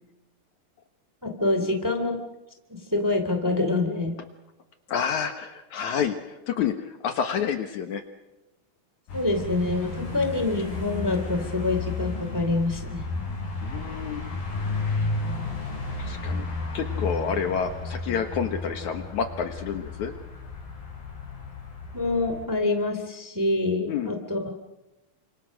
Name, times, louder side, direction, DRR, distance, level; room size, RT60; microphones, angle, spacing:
voice 1, 1.2-2.1 2.7-4.2 9.1-13.0 21.9-24.5, left 2 dB, 5° right, 5 dB, 2.3 m, -26 dB
voice 2, 4.9-8.0 13.6-14.2 14.8-15.1 16.0-16.5 16.7-20.1 23.9-24.1, left 7 dB, 65° left, 7 dB, 2.5 m, -29 dB
sound 1, 9.1-22.5, left 3 dB, 85° left, 6.9 m, -33 dB
29.0 x 26.5 x 6.5 m, 0.99 s
omnidirectional pair, 4.0 m